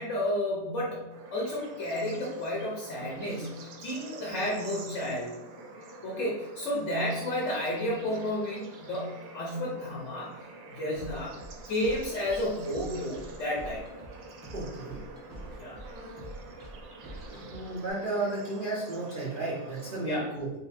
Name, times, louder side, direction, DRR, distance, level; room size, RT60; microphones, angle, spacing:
voice 1, 0.0-5.3 6.0-10.3 10.6-11.4 11.7-13.9 15.6-15.8 20.0-20.2, left 1 dB, 55° left, -3 dB, 0.9 m, -32 dB
Bird / Insect / Frog, 1.1-20.0, right 3 dB, 90° right, 1.4 m, -47 dB
sound 1, 10.9-17.9, right 1 dB, 20° right, 1.1 m, -45 dB
voice 2, 14.5-15.0 17.3-20.5, right 2 dB, 50° right, -7 dB, 0.6 m, -33 dB
4.0 x 2.2 x 4.1 m, 1.0 s
omnidirectional pair, 1.9 m